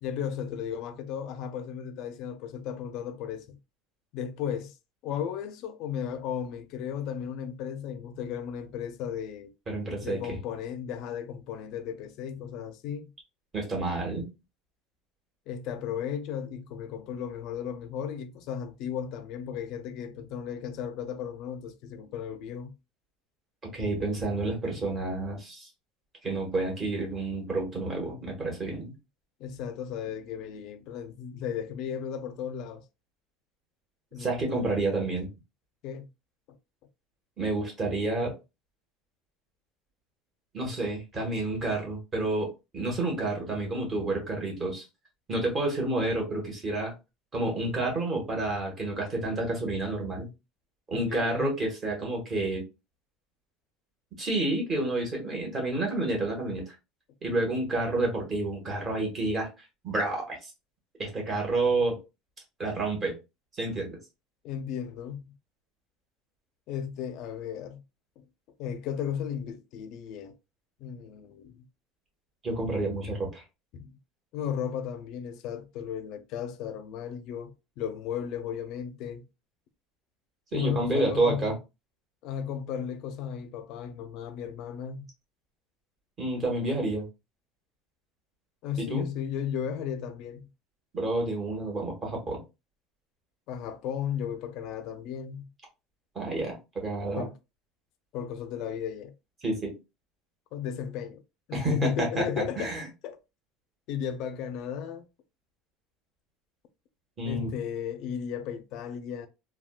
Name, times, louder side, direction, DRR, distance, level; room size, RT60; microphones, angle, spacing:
voice 1, 0.0-3.6 4.1-4.8 5.0-9.5 10.0-13.1 15.5-22.8 29.4-32.8 34.1-34.7 35.8-36.1 36.5-36.6 50.9-51.5 64.4-65.3 66.7-67.8 68.6-70.4 70.8-71.6 73.7-73.9 74.3-79.2 80.5-81.5 82.2-85.1 88.6-90.5 93.5-95.5 97.1-97.3 98.1-99.1 100.5-101.2 101.5-102.7 103.0-103.2 103.9-105.1 107.2-109.3, left 8 dB, 55° left, 0.5 m, -35 dB
voice 2, 9.7-10.4 13.5-14.3 23.7-25.7 26.2-29.0 34.2-35.3 37.4-38.4 40.5-44.8 45.3-46.9 47.3-50.3 50.9-52.6 54.2-56.7 57.2-59.5 59.8-60.5 61.0-62.0 62.6-63.2 63.5-64.0 72.4-73.4 80.5-81.5 86.2-87.0 88.9-89.0 90.9-92.4 96.1-97.2 99.4-99.7 101.5-102.2 102.6-102.8 107.2-107.5, right 2 dB, 25° right, 1.4 m, -29 dB
3.5 x 2.3 x 2.3 m
cardioid pair, 145°, 0 cm